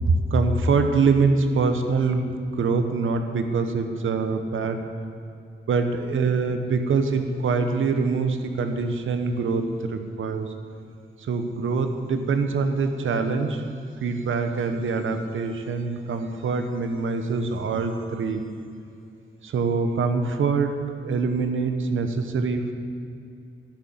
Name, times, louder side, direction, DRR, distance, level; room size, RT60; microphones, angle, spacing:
voice 1, 0.0-4.9 5.7-10.5 11.2-13.6 14.0-18.5 19.4-22.7, right 4 dB, 90° right, 7 dB, 1.1 m, -24 dB
13.0 x 6.8 x 9.5 m, 2.6 s
cardioid pair, 55°, 20 cm